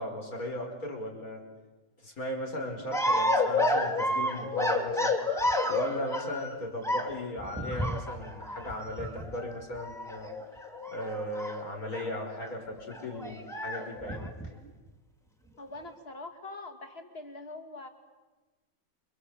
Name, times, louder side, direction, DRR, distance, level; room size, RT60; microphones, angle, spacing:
voice 1, 0.0-1.4 2.0-5.2 5.7-10.3 10.9-14.3, left 1 dB, 65° left, 3 dB, 5.6 m, -37 dB
sound 1, 2.9-6.6 6.8-12.1 12.4-12.5 12.8-14.7, left 1 dB, ahead, 2.7 m, -30 dB
voice 2, 15.6-17.9, left 2 dB, 40° left, 5 dB, 2.9 m, -43 dB
28.5 x 25.5 x 8.2 m, 1.2 s
omnidirectional pair, 1.6 m